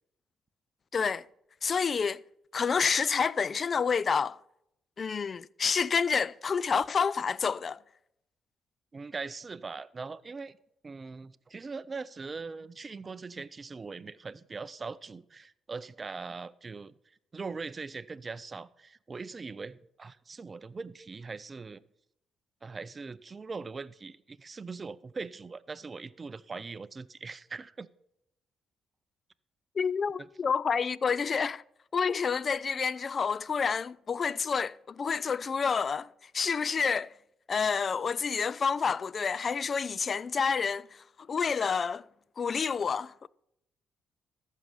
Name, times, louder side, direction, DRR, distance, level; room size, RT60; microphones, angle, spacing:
voice 1, 0.9-1.3 1.6-2.2 2.5-4.4 5.0-7.8 29.8-31.6 31.9-37.1 37.5-42.0 42.4-43.3, left 6 dB, 40° left, 0.3 m, -29 dB
voice 2, 8.9-10.6 10.8-16.9 17.3-21.8 22.6-27.9 30.2-30.3, right 4 dB, 30° right, 0.5 m, -41 dB
14.0 x 6.4 x 5.5 m
cardioid pair, 90°, 0 cm